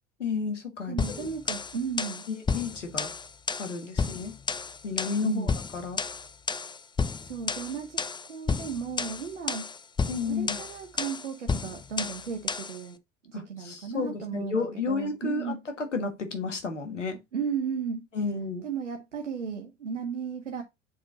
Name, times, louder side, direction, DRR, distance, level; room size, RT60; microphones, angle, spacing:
voice 1, 0.2-1.3 2.3-3.1 3.6-4.4 4.8-6.0 10.1-10.6 13.3-17.2 18.1-18.6, left 4 dB, 85° left, 1.5 m, -32 dB
voice 2, 0.9-2.2 5.2-5.5 7.2-9.7 10.3-13.0 13.3-14.6 14.9-15.6 17.3-18.1 18.6-20.6, right 6 dB, 85° right, 0.9 m, -34 dB
sound 1, 1.0-12.8, left 5 dB, 15° left, 0.5 m, -32 dB
7.2 x 4.4 x 3.7 m
figure-of-eight pair, 65°, 35 cm